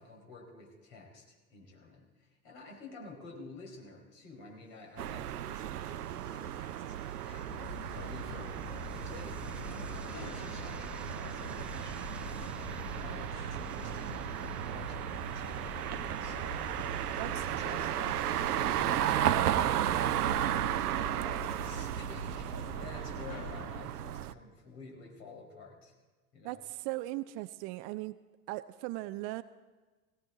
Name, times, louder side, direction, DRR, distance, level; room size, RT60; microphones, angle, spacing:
voice 1, 0.0-7.6 7.9-16.7 17.2-20.6 20.9-25.9 26.3-26.6, left 3 dB, 55° left, 1 dB, 5.0 m, -51 dB
sound 1, 4.7-22.6, right 2 dB, 5° right, 1.5 m, -55 dB
sound 2, 5.0-24.3, right 12 dB, 80° right, 0.6 m, -34 dB
sound 3, 7.5-23.8, left 6 dB, 35° left, 1.5 m, -45 dB
voice 2, 26.4-28.2 28.5-29.4, right 18 dB, 40° right, 13 dB, 0.5 m, -38 dB
17.5 x 17.5 x 3.9 m, 1.3 s
hypercardioid pair, 90°, 45 cm